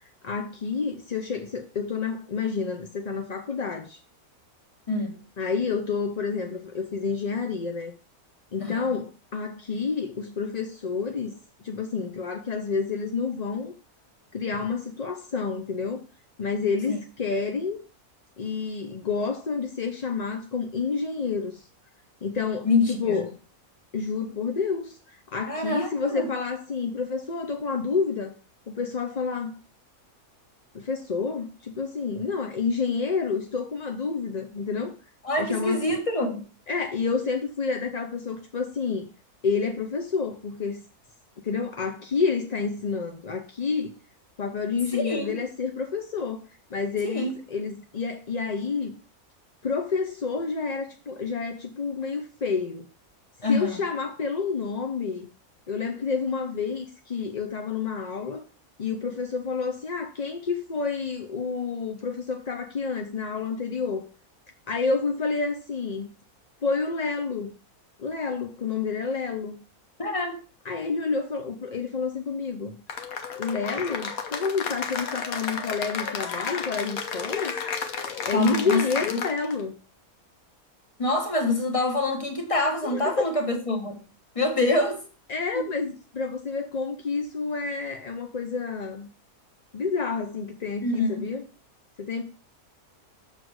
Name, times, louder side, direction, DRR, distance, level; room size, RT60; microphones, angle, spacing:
voice 1, 0.2-4.0 5.4-7.9 8.5-11.3 11.6-13.7 14.3-16.0 16.4-17.8 18.4-21.6 22.2-23.3 23.9-28.3 28.7-29.6 30.7-34.9 35.4-36.0 36.7-39.1 39.4-40.8 41.4-43.9 44.4-46.4 46.7-48.9 49.6-52.9 53.5-55.3 55.7-58.5 58.8-64.1 64.7-66.1 66.6-67.5 68.0-69.6 70.6-72.8 73.4-77.6 78.2-79.8 82.8-83.2 85.3-89.1 89.7-91.4 92.0-92.2, left 5 dB, 40° left, 0.6 m, -29 dB
voice 2, 8.6-9.0 16.9-17.0 22.6-23.3 25.5-26.3 35.2-36.5 44.9-45.4 47.0-47.4 53.4-53.8 70.0-70.4 78.3-78.8 79.1-79.2 81.0-84.0 84.3-85.0 85.5-85.7 90.8-91.2, left 2 dB, 25° left, 1.3 m, -26 dB
Cheering / Applause, 72.9-79.6, left 6 dB, 70° left, 1.4 m, -32 dB
6.6 x 4.1 x 6.2 m
omnidirectional pair, 1.6 m